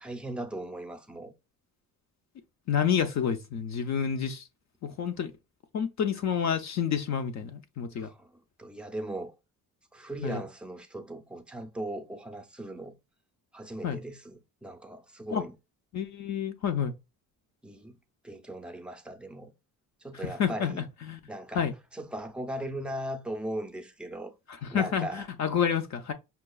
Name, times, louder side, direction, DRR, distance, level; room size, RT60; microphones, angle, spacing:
voice 1, 0.0-1.3 7.9-9.3 9.9-13.0 13.5-15.5 17.6-18.0 18.2-19.5 20.0-20.9 21.3-24.3 24.7-25.3, right 1 dB, 5° right, 0.4 m, -38 dB
voice 2, 2.7-4.5 4.8-5.3 5.7-8.1 10.2-10.4 13.8-14.0 15.3-15.4 15.9-16.9 20.2-21.2 21.5-21.7 24.6-26.1, left 8 dB, 50° left, 0.4 m, -29 dB
5.6 x 2.3 x 2.3 m
cardioid pair, 155°, 35 cm